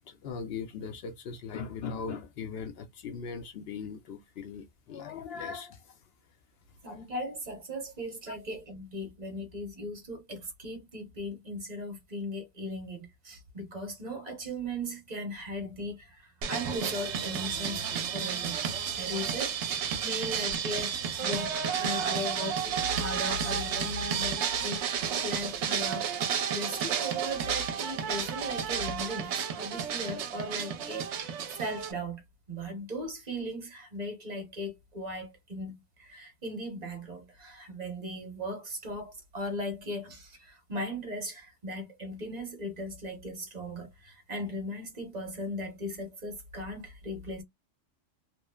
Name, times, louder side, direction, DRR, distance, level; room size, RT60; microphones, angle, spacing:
voice 1, 0.1-5.9 8.3-8.4, left 5 dB, 65° left, 0.7 m, -39 dB
voice 2, 6.8-18.6 18.9-26.3 26.5-32.2 32.5-47.4, equal, 35° right, 0.9 m, -38 dB
sound 1, 16.4-31.9, right 8 dB, 70° right, 0.9 m, -32 dB
3.0 x 2.0 x 2.2 m
omnidirectional pair, 1.3 m